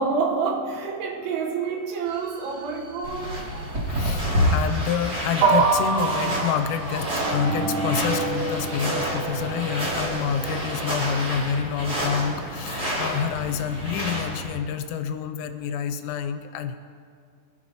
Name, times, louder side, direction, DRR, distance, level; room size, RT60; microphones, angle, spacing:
voice 1, 0.0-3.4, right 4 dB, 80° right, 2 dB, 3.8 m, -27 dB
sound 1, 2.1-3.1 3.5-3.6 4.5-4.6 5.4-11.2, right 4 dB, 65° right, 2.9 m, -27 dB
sound 2, 3.0-14.5, equal, 30° right, 1.9 m, -29 dB
voice 2, 3.9-4.2 4.5-16.8, left 8 dB, 90° left, 8 dB, 3.3 m, -28 dB
25.0 x 11.0 x 2.9 m, 2.2 s
omnidirectional pair, 5.9 m